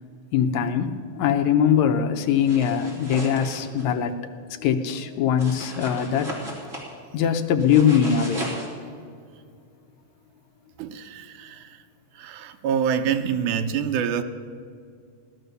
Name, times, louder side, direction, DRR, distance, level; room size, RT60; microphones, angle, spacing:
voice 1, 0.3-4.2 4.6-6.3 7.1-8.5, left 8 dB, 70° left, 6 dB, 2.0 m, -22 dB
sound 1, 2.4-3.9 5.4-6.9 7.6-8.7, right 1 dB, 25° right, 3.6 m, -36 dB
voice 2, 10.8-11.8 12.2-14.2, right 8 dB, 75° right, 6 dB, 2.2 m, -26 dB
17.5 x 12.0 x 6.8 m, 2.2 s
omnidirectional pair, 3.7 m